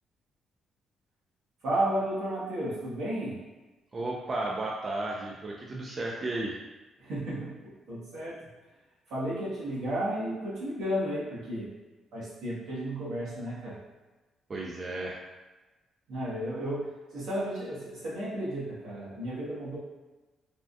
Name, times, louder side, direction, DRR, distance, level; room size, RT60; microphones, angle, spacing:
voice 1, 1.6-3.4 7.0-8.5 9.1-11.7 12.1-13.8 16.1-19.8, right 1 dB, 85° right, -8 dB, 1.3 m, -33 dB
voice 2, 3.9-6.5 14.5-15.2, right 2 dB, 40° right, -2 dB, 0.4 m, -33 dB
3.4 x 2.3 x 2.6 m, 1.2 s
cardioid pair, 90°, 0 cm